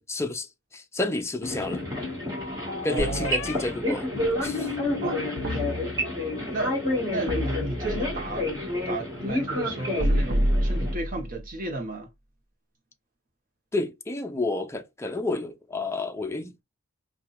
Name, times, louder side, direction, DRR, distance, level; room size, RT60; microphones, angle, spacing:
voice 1, 0.0-1.8 2.8-4.1 4.4-4.7 13.7-16.6, left 2 dB, 15° left, 0.5 m, -30 dB
sound 1, 1.4-2.2 3.2-3.6 4.2-5.7 6.0-6.6, left 6 dB, 85° left, 0.3 m, -37 dB
sound 2, 1.4-11.0, left 1 dB, 20° right, 1.9 m, -30 dB
voice 2, 2.9-3.5 5.0-5.2 5.5-5.6 6.4-6.8 7.1-8.5 8.9-12.1, right 2 dB, 45° right, 1.2 m, -33 dB
sound 3, 3.0-4.1 5.4-6.4 7.3-8.4 10.0-11.4, equal, 70° right, 1.0 m, -28 dB
4.0 x 2.7 x 2.5 m
head